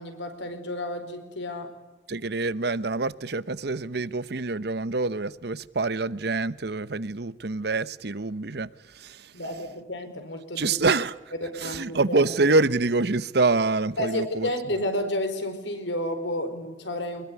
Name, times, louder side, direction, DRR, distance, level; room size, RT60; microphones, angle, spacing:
voice 1, 0.0-1.7 9.3-10.8 11.4-12.2 14.0-17.3, left 1 dB, 80° left, 4.7 m, -31 dB
voice 2, 2.1-8.7 8.9-9.3 10.6-11.2 11.6-14.5, right 3 dB, 60° right, 0.9 m, -26 dB
24.5 x 21.0 x 9.7 m
head